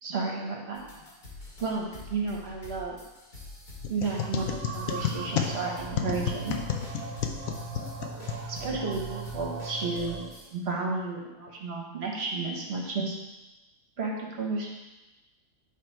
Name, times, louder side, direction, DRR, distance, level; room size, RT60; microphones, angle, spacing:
voice 1, 0.0-0.8 1.6-3.0 3.9-6.6 8.5-10.2 10.5-13.1 14.0-14.7, right 3 dB, 40° right, -1 dB, 1.1 m, -32 dB
sound 1, 0.7-10.5, left 2 dB, 30° left, 1.2 m, -47 dB
sound 2, 3.8-8.9, left 9 dB, 70° left, 0.8 m, -32 dB
sound 3, 4.2-10.4, right 6 dB, 85° right, 1.3 m, -39 dB
8.3 x 3.3 x 4.5 m, 1.1 s
omnidirectional pair, 1.9 m